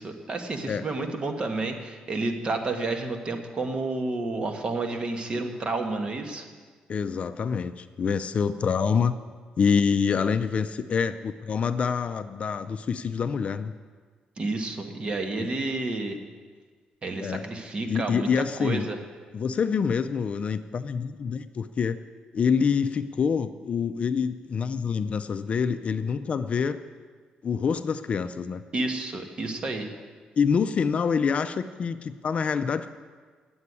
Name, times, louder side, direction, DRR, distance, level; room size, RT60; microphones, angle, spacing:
voice 1, 0.0-6.5 14.4-16.2 17.0-19.0 28.7-29.9, right 2 dB, 35° right, 5 dB, 1.5 m, -30 dB
voice 2, 6.9-9.2 9.6-13.7 15.4-15.5 17.2-17.4 17.9-18.9 19.3-22.0 22.3-26.8 27.4-28.6 30.4-32.9, left 6 dB, 45° left, 10 dB, 0.5 m, -26 dB
9.8 x 7.8 x 9.6 m, 1.5 s
cardioid pair, 115°, 3 cm